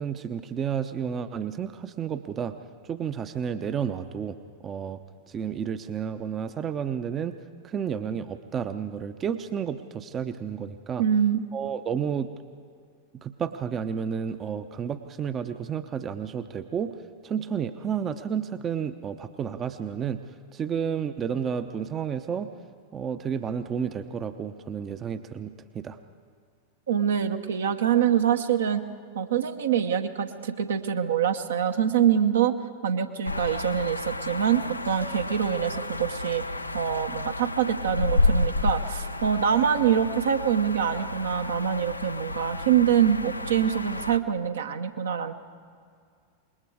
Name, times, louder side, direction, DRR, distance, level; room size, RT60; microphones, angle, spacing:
voice 1, 0.0-2.6 2.8-4.4 4.6-5.0 5.3-7.4 7.6-11.0 11.5-12.3 13.2-16.9 17.2-20.2 20.5-22.5 22.9-26.0, right 7 dB, 25° right, 10 dB, 0.8 m, -31 dB
voice 2, 11.0-11.5 26.9-28.8 29.1-32.5 32.8-36.4 36.7-45.3, right 8 dB, 65° right, 6 dB, 1.2 m, -25 dB
sound 1, 33.2-44.2, left 2 dB, 85° left, 0.6 m, -31 dB
26.0 x 21.0 x 4.8 m, 2.2 s
figure-of-eight pair, 90°, 0 cm